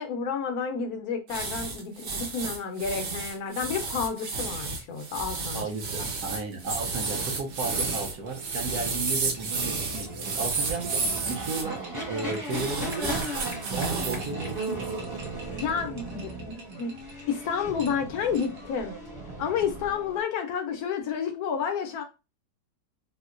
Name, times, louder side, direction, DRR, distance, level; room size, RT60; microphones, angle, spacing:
voice 1, 0.0-5.6 15.5-16.9 17.3-18.9 19.4-22.0, left 6 dB, 70° left, 1.0 m, -30 dB
sound 1, 1.3-11.6 12.4-14.3 14.6-14.9, right 4 dB, 85° right, 1.5 m, -32 dB
voice 2, 5.5-13.4 13.7-14.9, right 3 dB, 70° right, 1.1 m, -34 dB
sound 2, 6.6-20.2, right 2 dB, 15° right, 0.9 m, -37 dB
sound 3, 8.3-17.3 17.8-18.7, right 1 dB, 45° right, 0.8 m, -48 dB
4.2 x 2.1 x 2.4 m
omnidirectional pair, 1.8 m